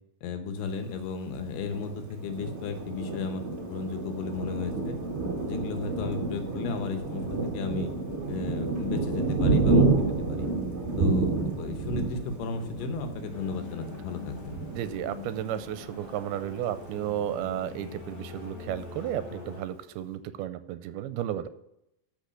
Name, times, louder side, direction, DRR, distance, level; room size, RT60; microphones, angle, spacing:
voice 1, 0.2-5.0 5.4-7.9 8.3-9.9 10.3-10.5 11.0-14.6, left 4 dB, 80° left, 7 dB, 3.1 m, -34 dB
Thunder, 1.7-16.0 16.5-16.6 16.9-17.6, right 3 dB, 40° right, 1.0 m, -29 dB
sound 1, 13.3-19.6, left 5 dB, 55° left, 3.3 m, -43 dB
voice 2, 14.7-21.5, right 11 dB, 80° right, 12 dB, 2.4 m, -33 dB
13.5 x 5.6 x 6.4 m, 0.83 s
omnidirectional pair, 4.6 m